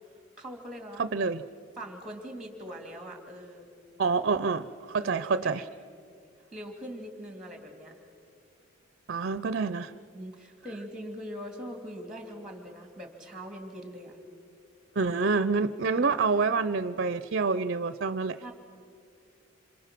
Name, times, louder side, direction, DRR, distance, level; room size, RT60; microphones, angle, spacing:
voice 1, 0.4-1.0 1.8-3.7 5.0-5.7 6.5-8.0 10.1-14.2 15.9-16.1 18.4-18.5, equal, 5° right, 3 dB, 2.4 m, -42 dB
voice 2, 1.0-1.4 4.0-5.6 9.1-9.9 15.0-18.4, right 4 dB, 50° right, 13 dB, 0.5 m, -27 dB
27.0 x 26.5 x 6.0 m, 2.4 s
head